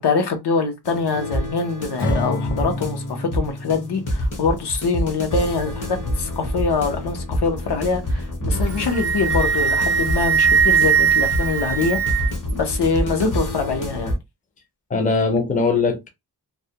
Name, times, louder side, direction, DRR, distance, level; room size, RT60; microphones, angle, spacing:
voice 1, 0.0-14.1, left 4 dB, 75° left, 0.7 m, -24 dB
sound 1, 0.8-14.2, left 1 dB, 50° left, 0.9 m, -27 dB
Acoustic guitar / Strum, 2.0-5.3, left 1 dB, 90° left, 1.1 m, -30 dB
Wind instrument woodwind instrument, 8.6-12.5, right 7 dB, 40° right, 0.4 m, -20 dB
voice 2, 14.9-16.1, left 3 dB, 20° left, 0.5 m, -21 dB
2.3 x 2.1 x 2.7 m
wide cardioid pair, 145°, 41 cm